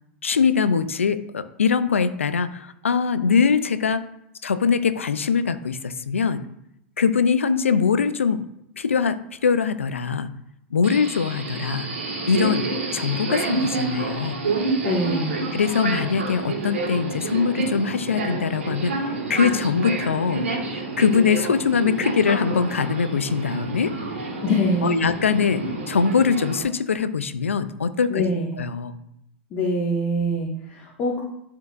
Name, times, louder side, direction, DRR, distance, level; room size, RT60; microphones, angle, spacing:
voice 1, 0.2-4.0 4.4-6.5 7.0-8.5 8.8-10.3 10.7-11.9 12.3-14.4 15.5-18.9 19.3-23.9 24.8-28.2 28.6-29.0, left 6 dB, 90° left, 12 dB, 0.6 m, -22 dB
Subway metro underground, 10.8-26.6, right 3 dB, 85° right, 1.8 m, -29 dB
voice 2, 14.8-15.5 24.4-25.1 28.1-28.5 29.5-31.2, equal, 40° left, -4 dB, 1.8 m, -24 dB
12.0 x 4.6 x 2.6 m, 0.80 s
hypercardioid pair, 95°, 7 cm